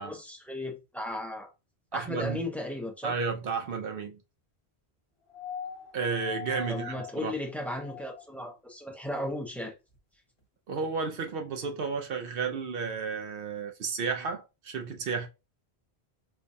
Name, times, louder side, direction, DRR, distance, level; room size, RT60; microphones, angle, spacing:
voice 1, 0.0-1.5 1.9-3.2 6.7-9.7, left 1 dB, ahead, 0.6 m, -35 dB
voice 2, 1.9-2.4 3.0-4.2 5.9-7.3 10.7-15.3, right 5 dB, 65° right, 0.7 m, -32 dB
sound 1, 5.3-8.5 9.9-10.0, left 7 dB, 60° left, 1.2 m, -42 dB
4.5 x 2.2 x 2.6 m
omnidirectional pair, 1.1 m